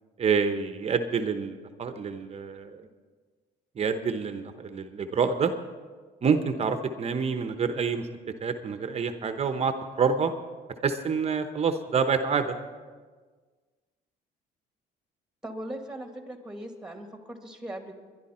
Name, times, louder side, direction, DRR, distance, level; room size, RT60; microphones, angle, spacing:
voice 1, 0.2-2.9 3.7-5.5 6.2-8.1 8.4-10.3 10.8-12.6, right 5 dB, 40° right, 8 dB, 1.0 m, -27 dB
voice 2, 15.4-17.9, right 1 dB, 5° right, 4 dB, 2.0 m, -39 dB
21.0 x 11.5 x 4.4 m, 1.5 s
cardioid pair, 110°, 17 cm